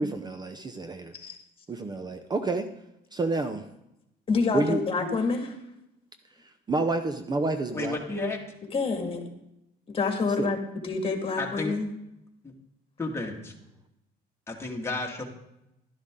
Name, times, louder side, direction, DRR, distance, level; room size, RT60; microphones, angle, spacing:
voice 1, 0.0-1.1 1.7-2.7 3.1-3.7 4.5-4.8 6.7-8.0 10.4-10.5, right 3 dB, 25° right, 8 dB, 0.7 m, -29 dB
voice 2, 4.3-5.6 8.7-9.2 9.9-10.6 10.8-11.9, left 4 dB, 35° left, 3 dB, 2.1 m, -27 dB
voice 3, 7.7-8.4 11.4-11.7 12.4-12.5 13.0-13.5 14.5-15.2, left 3 dB, 15° left, -1 dB, 2.1 m, -32 dB
11.5 x 11.5 x 3.8 m, 0.85 s
cardioid pair, 110°, 17 cm